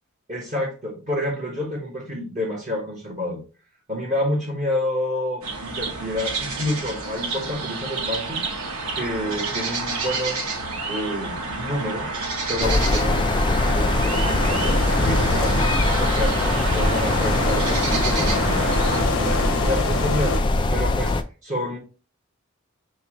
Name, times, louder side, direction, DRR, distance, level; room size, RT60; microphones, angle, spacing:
voice 1, 0.3-3.4 3.9-8.4 8.9-10.4 10.8-12.1 12.5-15.6 16.0-20.3 20.7-21.1 21.4-21.8, left 1 dB, 35° right, -3 dB, 1.3 m, -29 dB
sound 1, 5.4-19.0, right 3 dB, 85° right, 1.1 m, -29 dB
sound 2, 12.6-21.2, left 2 dB, 20° left, 0.3 m, -22 dB
sound 3, 13.1-20.4, left 2 dB, 75° left, 0.9 m, -28 dB
6.8 x 2.4 x 2.9 m, 0.34 s
head